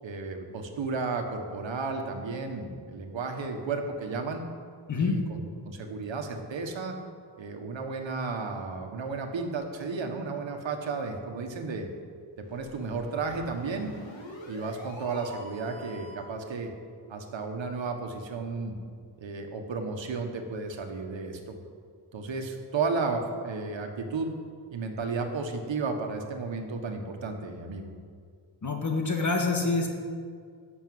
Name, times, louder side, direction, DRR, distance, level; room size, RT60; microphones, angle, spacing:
voice 1, 0.0-4.4 5.0-7.0 7.4-11.9 12.4-13.9 14.5-16.7 17.1-18.7 19.2-21.6 22.1-24.3 24.7-27.9, right 4 dB, 80° right, 4 dB, 1.5 m, -33 dB
sound 1, 12.4-16.3, equal, 85° left, 2.6 m, -45 dB
voice 2, 28.6-29.9, left 3 dB, 40° left, 2 dB, 1.6 m, -26 dB
11.5 x 6.9 x 7.8 m, 2.1 s
wide cardioid pair, 150°, 44 cm